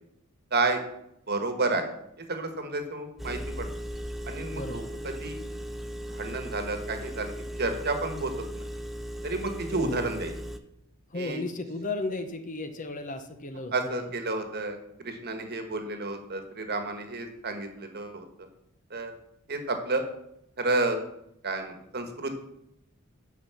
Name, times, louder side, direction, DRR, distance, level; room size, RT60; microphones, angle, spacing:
voice 1, 0.5-0.8 1.3-1.9 2.2-3.7 4.2-5.4 6.1-7.3 7.6-8.6 9.2-10.3 11.1-11.4 13.7-18.5 18.9-19.1 19.5-20.0 20.6-21.0 21.4-22.4, right 2 dB, 45° right, 6 dB, 1.4 m, -31 dB
Engine, 3.2-10.6, equal, ahead, 0.5 m, -37 dB
voice 2, 4.5-4.9 9.7-10.1 11.1-14.1, left 2 dB, 35° left, 8 dB, 0.8 m, -35 dB
9.2 x 5.7 x 6.9 m, 0.79 s
head